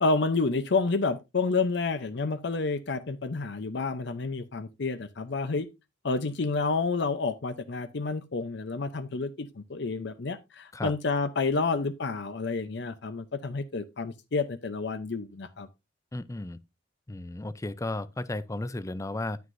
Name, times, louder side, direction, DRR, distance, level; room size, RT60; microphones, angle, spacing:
voice 1, 0.0-5.7 6.0-15.7, left 3 dB, 65° left, 0.6 m, -29 dB
voice 2, 16.1-16.6 17.1-19.4, left 2 dB, 15° left, 0.4 m, -34 dB
9.4 x 9.3 x 2.6 m
head